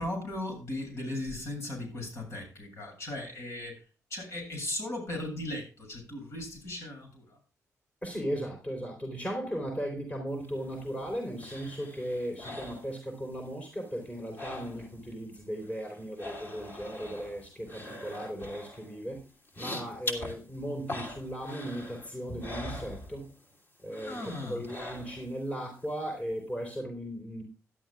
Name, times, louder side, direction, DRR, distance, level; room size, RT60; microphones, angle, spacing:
voice 1, 0.0-3.8 4.1-7.4 24.1-24.6, left 1 dB, 55° left, 3 dB, 7.2 m, -37 dB
voice 2, 8.0-19.2 19.6-23.3 23.8-27.4, equal, 25° left, 2 dB, 4.1 m, -37 dB
sound 1, 10.4-13.5 13.8-15.1 15.4-23.5 23.9-25.4 25.8-25.9, left 2 dB, 40° left, 2.8 m, -43 dB
17.0 x 11.5 x 2.4 m, 0.33 s
cardioid pair, 80°, 6 cm